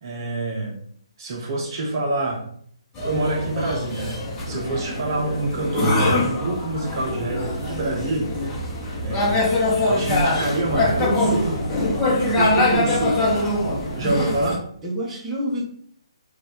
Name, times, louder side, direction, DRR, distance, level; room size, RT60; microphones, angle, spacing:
voice 1, 0.0-0.8 1.2-2.4 3.0-8.3 9.0-9.6 9.8-11.6 12.4-13.2 13.9-14.6, right 2 dB, 45° right, 0 dB, 0.8 m, -26 dB
sound 1, 3.0-14.6, left 1 dB, 20° left, 1.0 m, -23 dB
voice 2, 4.4-4.9 12.7-13.4 13.7-14.4 14.8-15.6, equal, 10° right, -5 dB, 1.1 m, -30 dB
4.6 x 2.5 x 3.8 m, 0.62 s
figure-of-eight pair, 145°, 3 cm